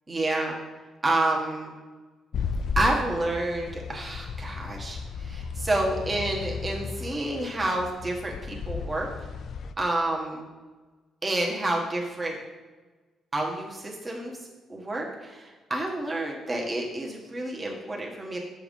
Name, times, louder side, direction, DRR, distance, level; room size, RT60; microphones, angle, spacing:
voice 1, 0.1-0.6 1.0-1.7 2.7-9.3 9.8-10.4 11.2-12.4 13.3-14.4 14.7-18.4, right 2 dB, 25° right, -1 dB, 1.4 m, -29 dB
sound 1, 2.3-9.7, left 5 dB, 60° left, 0.4 m, -34 dB
7.2 x 4.7 x 5.2 m, 1.3 s
cardioid pair, 90°, 0 cm